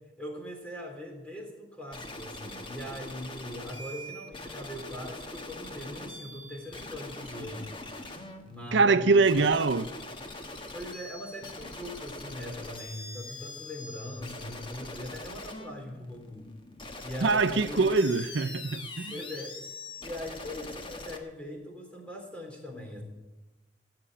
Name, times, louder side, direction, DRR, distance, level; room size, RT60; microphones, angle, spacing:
voice 1, 0.2-7.8 8.4-9.7 10.7-16.5 17.0-17.9 19.1-19.5 20.0-23.0, left 1 dB, 5° left, 3.5 m, -41 dB
sound 1, 1.9-21.2, left 2 dB, 30° left, 1.3 m, -43 dB
voice 2, 8.7-9.9 17.2-19.1, right 4 dB, 85° right, 0.6 m, -23 dB
17.5 x 6.9 x 10.0 m
head